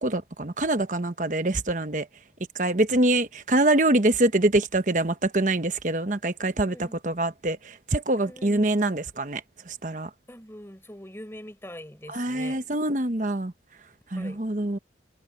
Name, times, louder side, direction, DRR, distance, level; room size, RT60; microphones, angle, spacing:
voice 1, 0.0-2.1 2.6-9.4 9.7-10.1 12.1-13.5 14.1-14.8, right 2 dB, 45° right, 1.1 m, -25 dB
voice 2, 6.4-6.9 8.2-8.7 10.3-12.6 14.1-14.4, equal, 15° left, 5.0 m, -43 dB
head